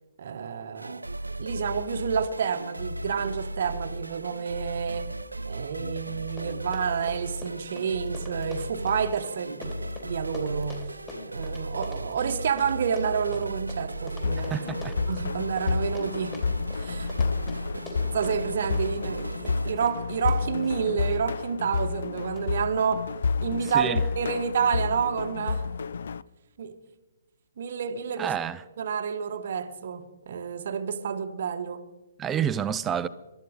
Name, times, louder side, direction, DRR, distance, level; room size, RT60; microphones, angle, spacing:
voice 1, 0.2-1.0 1.4-5.1 5.4-11.0 11.3-16.4 16.7-17.1 17.5-23.1 23.4-25.7 26.6-26.7 27.6-28.3 28.8-31.8, right 6 dB, 50° right, 0.9 m, -29 dB
sound 1, 0.8-19.7, right 1 dB, 80° right, 0.5 m, -36 dB
Run, 5.9-6.0 6.2-21.2 21.8-22.0 22.4-22.5, left 2 dB, 20° left, 4.2 m, -44 dB
sound 2, 14.2-26.2, left 5 dB, 55° left, 0.4 m, -30 dB
voice 2, 14.5-14.9 23.7-24.0 28.2-28.6 32.2-33.1, right 8 dB, 15° right, 0.5 m, -28 dB
26.5 x 12.5 x 3.7 m
figure-of-eight pair, 125°, 0 cm